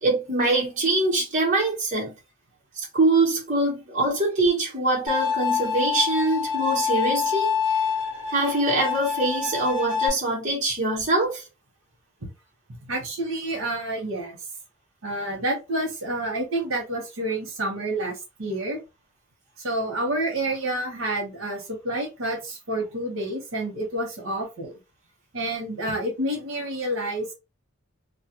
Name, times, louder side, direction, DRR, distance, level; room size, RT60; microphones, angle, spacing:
voice 1, 0.0-2.1 2.8-7.5 8.3-11.4, right 2 dB, 35° right, 1.0 m, -23 dB
Bowed string instrument, 5.1-10.1, left 6 dB, 60° left, 0.9 m, -26 dB
voice 2, 12.9-14.4 15.0-18.8 19.6-24.8 25.3-27.3, right 1 dB, 65° right, 0.9 m, -29 dB
2.3 x 2.1 x 2.8 m
head